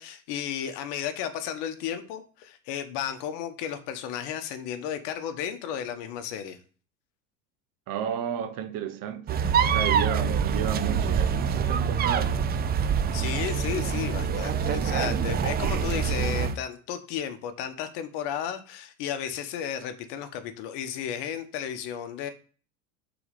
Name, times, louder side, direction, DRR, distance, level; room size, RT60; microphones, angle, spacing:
voice 1, 0.0-6.6 13.1-22.3, left 9 dB, 60° left, 1.1 m, -33 dB
voice 2, 7.9-12.4, right 9 dB, 50° right, 0.9 m, -32 dB
sound 1, 9.3-16.6, right 6 dB, 25° right, 0.4 m, -25 dB
4.9 x 4.0 x 5.1 m
hypercardioid pair, 80°, 46 cm